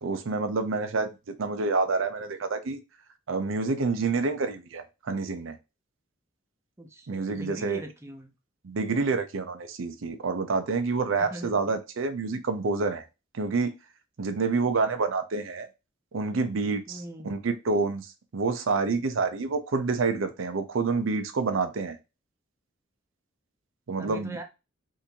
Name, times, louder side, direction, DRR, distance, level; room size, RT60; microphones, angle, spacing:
voice 1, 0.0-1.1 1.4-2.8 3.3-5.6 7.1-7.8 8.6-13.0 13.3-13.7 14.2-15.7 16.1-17.0 17.2-22.0 23.9-24.3, right 4 dB, 75° right, 0.6 m, -28 dB
voice 2, 6.8-8.4 11.2-11.6 16.9-17.3 24.0-24.4, right 1 dB, 15° right, 0.6 m, -41 dB
3.7 x 2.6 x 2.8 m
head